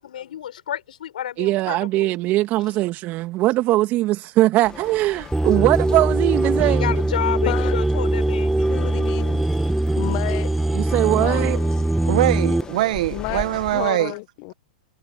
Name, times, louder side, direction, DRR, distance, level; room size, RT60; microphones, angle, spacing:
voice 1, 0.0-2.2 6.5-8.7, left 10 dB, 75° left, 6.3 m, -30 dB
voice 2, 1.4-6.9 10.7-11.6, right 17 dB, 40° right, 2.4 m, -21 dB
sound 1, 4.6-13.9, left 5 dB, 15° left, 2.1 m, -39 dB
sound 2, 5.3-12.6, right 2 dB, 5° right, 0.3 m, -21 dB
voice 3, 7.5-7.8 8.7-9.4 9.9-10.5 11.1-11.8 13.1-14.5, left 26 dB, 45° left, 1.5 m, -31 dB
voice 4, 12.1-14.1, right 16 dB, 60° right, 1.7 m, -22 dB
hypercardioid pair, 120°, 5 cm